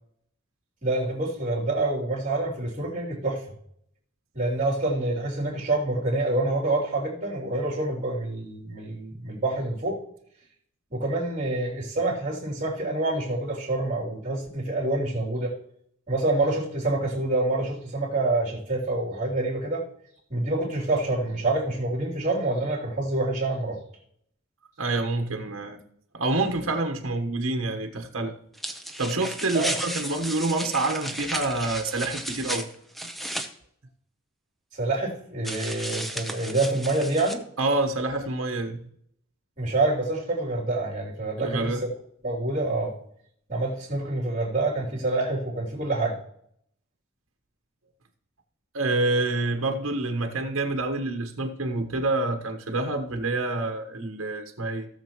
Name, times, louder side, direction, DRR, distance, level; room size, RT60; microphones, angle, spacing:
voice 1, 0.8-3.4 4.3-10.0 10.9-15.5 16.1-19.8 20.3-23.8 29.5-29.8 34.7-37.4 39.6-41.9 42.2-42.9 43.5-46.2, right 2 dB, 35° right, -2 dB, 3.2 m, -27 dB
voice 2, 24.8-25.8 26.1-28.3 29.0-32.7 37.6-38.9 41.4-41.8 48.7-54.9, right 2 dB, 70° right, 4 dB, 1.2 m, -27 dB
sound 1, 28.5-33.5 35.4-37.3, right 1 dB, ahead, 0.7 m, -34 dB
17.0 x 6.7 x 3.0 m, 0.69 s
head